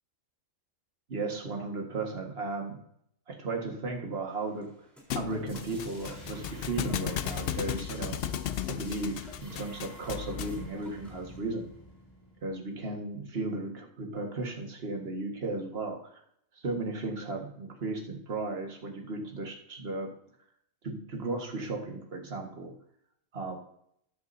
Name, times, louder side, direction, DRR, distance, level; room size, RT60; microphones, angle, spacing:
voice 1, 1.1-2.8 3.3-4.7 5.1-8.2 8.7-11.7 12.4-16.2 16.6-20.1 20.8-22.7 23.3-23.6, right 3 dB, 50° right, 2 dB, 1.9 m, -35 dB
sound 1, 4.3-11.4, equal, ahead, 3.8 m, -55 dB
Thump thud, 5.1-10.7, left 10 dB, 65° left, 0.6 m, -35 dB
sound 2, 5.5-13.0, equal, 30° left, 2.7 m, -49 dB
14.0 x 10.0 x 2.7 m, 0.70 s
omnidirectional pair, 1.4 m